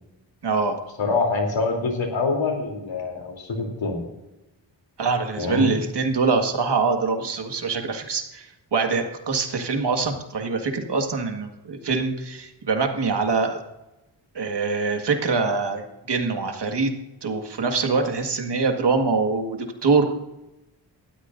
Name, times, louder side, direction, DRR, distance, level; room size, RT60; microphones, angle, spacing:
voice 1, 0.4-0.8 5.0-13.6 14.3-16.9 17.2-20.1, right 4 dB, 65° right, 4 dB, 1.9 m, -24 dB
voice 2, 1.0-4.0 5.4-5.7, left 3 dB, 80° left, 1 dB, 3.5 m, -25 dB
19.0 x 13.0 x 2.7 m, 0.96 s
wide cardioid pair, 100°, 44 cm